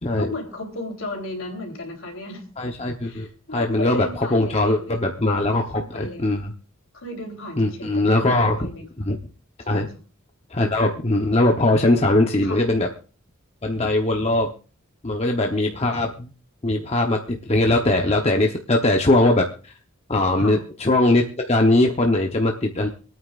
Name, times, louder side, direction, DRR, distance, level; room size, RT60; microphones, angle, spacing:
voice 1, 0.2-2.4 3.0-5.0 5.3-6.2 6.9-8.9 9.6-9.9 12.4-12.6 20.4-20.6, left 2 dB, 65° left, 2 dB, 3.6 m, -35 dB
voice 2, 2.6-3.3 3.5-6.5 7.6-8.6 9.0-9.2 9.7-9.9 10.5-12.9 13.6-14.5 15.0-16.3 16.6-19.4 20.1-22.9, left 2 dB, 30° left, 2 dB, 0.9 m, -20 dB
27.0 x 9.1 x 2.5 m, 0.36 s
head